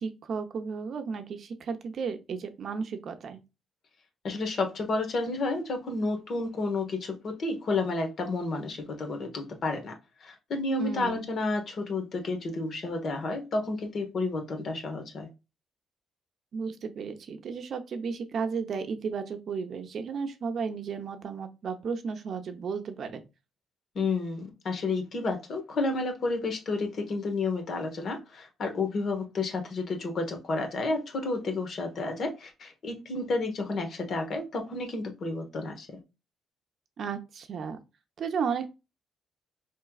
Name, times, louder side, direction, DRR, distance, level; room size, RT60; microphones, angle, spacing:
voice 1, 0.0-3.4 10.8-11.3 16.5-23.2 37.0-37.8 38.2-38.7, right 5 dB, 55° right, 0.7 m, -34 dB
voice 2, 4.2-9.9 10.2-15.3 23.9-36.0, left 3 dB, 55° left, 1.2 m, -31 dB
4.5 x 3.2 x 2.3 m
cardioid pair, 90°, 0 cm